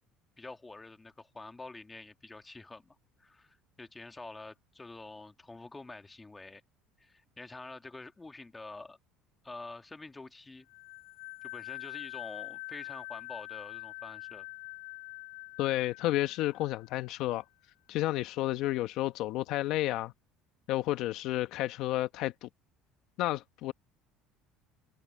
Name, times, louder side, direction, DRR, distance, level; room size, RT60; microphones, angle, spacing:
voice 1, 0.4-6.6 7.0-9.0 9.4-10.7 11.4-14.5, left 3 dB, 15° left, 2.1 m, -47 dB
sound 1, 10.7-17.2, left 40 dB or more, 80° left, 7.5 m, -45 dB
voice 2, 15.6-17.4 17.9-20.1 20.7-22.5 23.2-23.7, left 16 dB, 65° left, 1.2 m, -31 dB
supercardioid pair, 115°, 0 cm